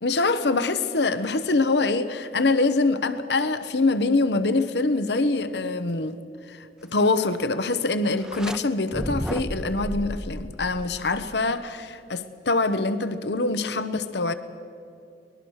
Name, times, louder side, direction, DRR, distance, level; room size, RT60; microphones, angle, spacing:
voice 1, 0.0-6.2 6.5-14.3, left 3 dB, 70° left, 1.0 m, -24 dB
sound 1, 8.1-8.6 8.9-11.5, equal, 5° right, 0.7 m, -33 dB
23.5 x 20.0 x 6.4 m
head